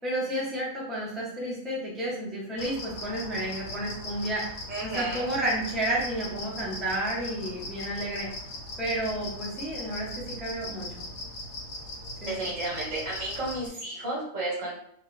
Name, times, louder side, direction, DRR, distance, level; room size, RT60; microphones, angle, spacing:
voice 1, 0.0-4.5 4.8-8.3 8.8-11.0 12.2-12.5, right 1 dB, ahead, -6 dB, 0.6 m, -31 dB
sound 1, 2.6-13.7, left 1 dB, 70° left, 1.0 m, -39 dB
voice 2, 4.7-5.3 12.3-14.7, right 2 dB, 70° right, -5 dB, 1.5 m, -32 dB
2.9 x 2.3 x 3.1 m, 0.71 s
omnidirectional pair, 1.4 m